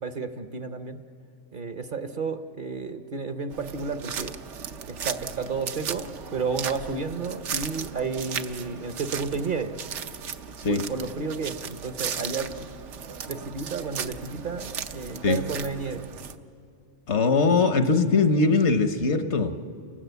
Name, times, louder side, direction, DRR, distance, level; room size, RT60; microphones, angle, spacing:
voice 1, 0.0-1.0 1.5-4.4 4.9-9.8 10.7-12.6 13.3-16.0, right 4 dB, 45° right, 9 dB, 0.9 m, -32 dB
sound 1, 3.5-16.4, right 7 dB, 70° right, 1.1 m, -36 dB
voice 2, 17.1-19.5, left 4 dB, 65° left, 9 dB, 1.3 m, -21 dB
29.5 x 19.0 x 8.2 m, 2.5 s
omnidirectional pair, 1.3 m